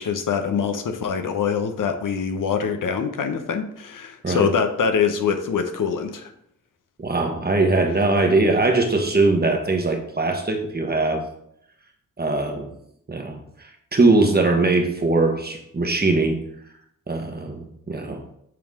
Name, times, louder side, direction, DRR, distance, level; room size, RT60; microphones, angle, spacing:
voice 1, 0.0-6.3, left 6 dB, 75° left, 6 dB, 0.8 m, -24 dB
voice 2, 7.0-11.2 12.2-12.7 13.1-13.4 13.9-16.4 17.1-18.2, right 3 dB, 30° right, 3 dB, 1.2 m, -21 dB
7.7 x 3.5 x 3.6 m, 0.72 s
cardioid pair, 60°, 32 cm